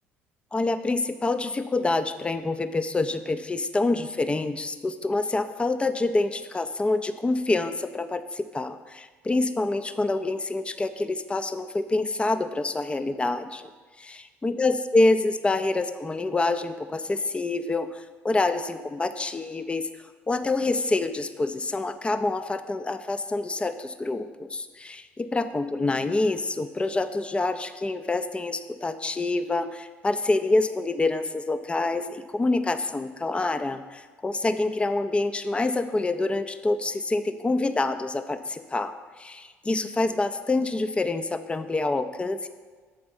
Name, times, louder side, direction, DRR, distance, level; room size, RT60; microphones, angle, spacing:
voice 1, 0.5-13.7 14.4-19.9 20.3-42.5, left 2 dB, 15° left, 10 dB, 0.5 m, -26 dB
7.8 x 4.2 x 5.5 m, 1.5 s
hypercardioid pair, 55°, 7 cm